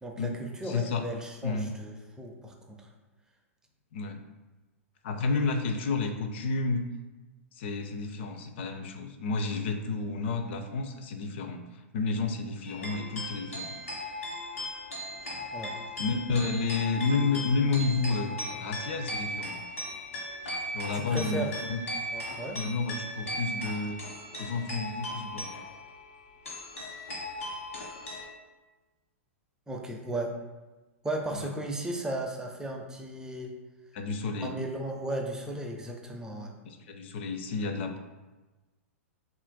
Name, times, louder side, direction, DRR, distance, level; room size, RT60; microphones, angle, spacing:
voice 1, 0.0-2.9 15.5-15.7 20.9-21.6 22.1-22.6 29.7-30.3 31.0-33.6 34.4-36.5, right 1 dB, 10° right, 1 dB, 0.5 m, -35 dB
voice 2, 0.6-1.0 1.4-1.7 3.9-4.2 5.0-6.8 7.6-11.6 11.9-13.7 16.0-18.3 18.6-19.6 20.7-21.8 22.5-24.0 24.4-25.5 31.3-31.5 33.9-34.5 36.6-38.0, left 4 dB, 55° left, 5 dB, 0.4 m, -30 dB
sound 1, 12.6-28.2, left 1 dB, 75° left, 1.2 m, -38 dB
5.5 x 2.5 x 2.2 m, 1.2 s
figure-of-eight pair, 105°, 7 cm